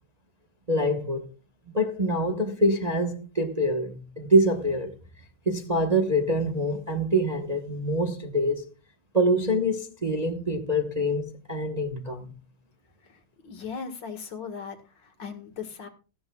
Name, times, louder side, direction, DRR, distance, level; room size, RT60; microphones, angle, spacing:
voice 1, 0.7-1.3 1.7-4.9 5.5-8.7 9.1-12.3, equal, 25° right, 0.9 m, -25 dB
voice 2, 13.0-15.9, left 6 dB, 60° left, 2.4 m, -38 dB
17.0 x 14.5 x 2.3 m
omnidirectional pair, 2.2 m